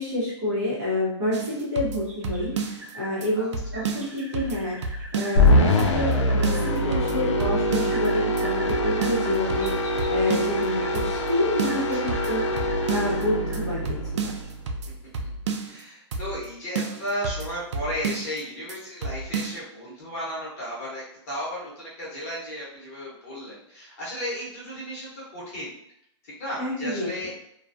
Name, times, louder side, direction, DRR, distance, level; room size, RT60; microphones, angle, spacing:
voice 1, 0.0-14.3 26.6-27.1, left 1 dB, 30° right, -7 dB, 1.0 m, -28 dB
sound 1, 1.3-2.9 3.2-3.3 3.5-5.5 5.8-6.2 6.4-8.1 8.4-8.5 8.7-10.7 10.9-11.3 11.6-13.2 13.5-13.6 13.8-15.8 16.1-16.5 16.7-18.4 18.7-18.8 19.0-19.6, right 4 dB, 70° right, 0.4 m, -32 dB
sound 2, 2.0-3.1 3.7-6.7 7.9-11.0 11.6-13.9 14.4-14.5, equal, 15° right, 0.5 m, -43 dB
voice 2, 3.4-3.9 11.7-11.8 12.1-12.7 15.2-15.3 15.6-25.8 26.2-27.3, equal, 30° left, -8 dB, 1.0 m, -35 dB
sound 3, 5.4-14.7, left 1 dB, 80° left, 0.5 m, -24 dB
2.3 x 2.3 x 2.5 m, 0.76 s
hypercardioid pair, 170°, 15 cm